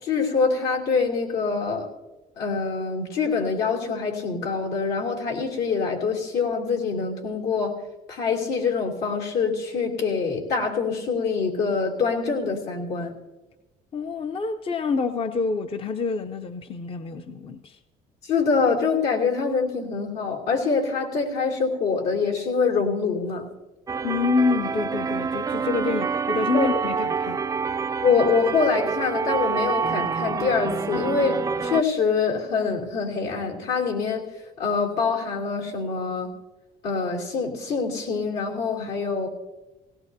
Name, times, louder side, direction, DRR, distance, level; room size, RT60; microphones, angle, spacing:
voice 1, 0.0-1.9 2.4-7.8 8.1-13.1 18.2-23.5 26.5-26.7 28.0-34.3 34.6-36.3 36.8-39.3, left 5 dB, 80° left, 3.0 m, -25 dB
voice 2, 13.9-17.8 24.0-27.5, left 4 dB, 35° left, 0.6 m, -27 dB
sound 1, 23.9-31.8, right 5 dB, 20° right, 0.3 m, -27 dB
17.5 x 17.5 x 2.8 m
cardioid pair, 110°, 17 cm